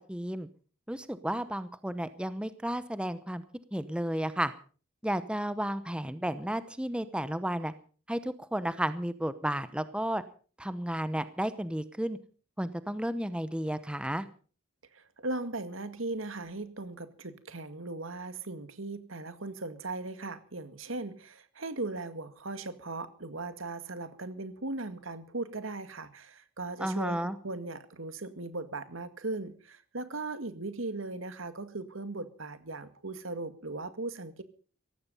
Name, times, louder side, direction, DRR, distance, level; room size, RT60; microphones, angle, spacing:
voice 1, 0.1-0.5 0.9-3.4 3.7-4.5 5.0-7.7 8.1-10.2 10.6-12.2 12.6-14.2 26.8-27.4, right 1 dB, 5° right, 13 dB, 0.8 m, -32 dB
voice 2, 14.9-34.4, right 2 dB, 80° right, 10 dB, 2.1 m, -38 dB
17.0 x 15.5 x 5.4 m, 0.41 s
head